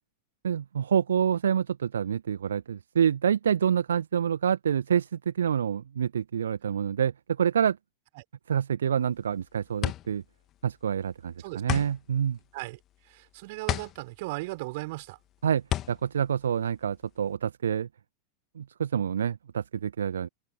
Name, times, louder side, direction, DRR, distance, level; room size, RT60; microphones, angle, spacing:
voice 1, 0.4-7.8 8.5-10.2 10.6-12.4 15.4-17.9 18.5-20.3, right 8 dB, 65° right, 1.4 m, -27 dB
sound 1, 9.0-17.3, left 13 dB, 30° left, 2.7 m, -35 dB
voice 2, 11.4-11.8 12.5-12.8 13.1-15.2, right 23 dB, 50° right, 5.6 m, -37 dB
figure-of-eight pair, 90°, 0 cm